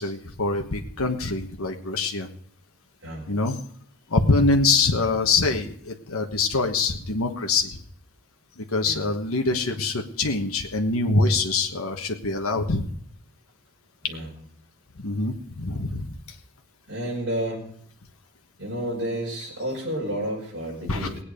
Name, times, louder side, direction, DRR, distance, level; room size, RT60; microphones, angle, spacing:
voice 1, 0.0-2.3 3.3-3.6 4.1-7.8 8.6-12.9 15.0-16.1 20.9-21.1, left 3 dB, 75° left, 3 dB, 1.3 m, -24 dB
voice 2, 16.9-17.7 18.6-21.2, right 1 dB, 55° right, -7 dB, 5.8 m, -30 dB
19.5 x 8.8 x 5.1 m, 0.63 s
head